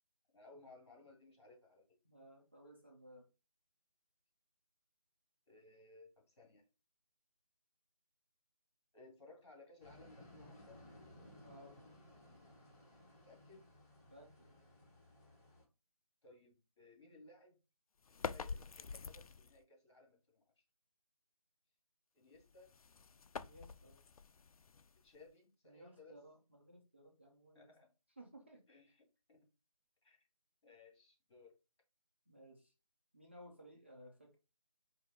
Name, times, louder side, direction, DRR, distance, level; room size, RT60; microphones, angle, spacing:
voice 1, 0.3-1.9 5.5-6.6 8.9-10.8 13.2-13.6 16.2-17.6 18.1-20.5 22.1-22.8 25.0-26.2 27.5-27.9 28.7-29.4 30.0-30.3 30.6-31.6, left 3 dB, 50° left, 1 dB, 2.1 m, -61 dB
voice 2, 2.0-3.3 11.4-11.8 14.1-14.6 23.4-24.0 25.6-27.7 28.2-28.6 32.3-32.7 33.1-34.4, equal, 20° right, -1 dB, 0.4 m, -59 dB
sound 1, 9.8-15.6, left 1 dB, 30° left, 1.6 m, -60 dB
sound 2, 18.0-19.6 22.3-25.3, left 5 dB, 70° left, 0.4 m, -47 dB
4.6 x 2.6 x 4.0 m, 0.29 s
figure-of-eight pair, 165°, 19 cm